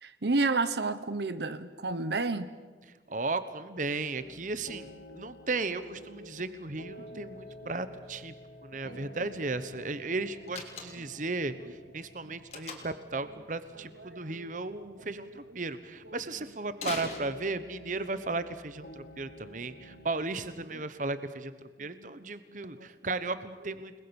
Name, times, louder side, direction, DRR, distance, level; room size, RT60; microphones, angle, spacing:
voice 1, 0.0-2.5 6.2-6.3 7.0-7.2 8.8-9.1 12.3-12.4 14.0-14.6 15.1-15.2 19.4-20.1 21.8-22.1 22.5-22.9, right 3 dB, 70° right, 12 dB, 1.0 m, -33 dB
voice 2, 3.1-8.3 8.6-23.9, right 3 dB, 45° right, 13 dB, 1.1 m, -35 dB
sound 1, 4.1-20.2, left 1 dB, 60° left, 2.4 m, -51 dB
Slam, 10.5-11.2 12.5-13.1 16.7-17.8, left 4 dB, 35° left, 3.3 m, -41 dB
30.0 x 20.0 x 7.1 m, 1.5 s
head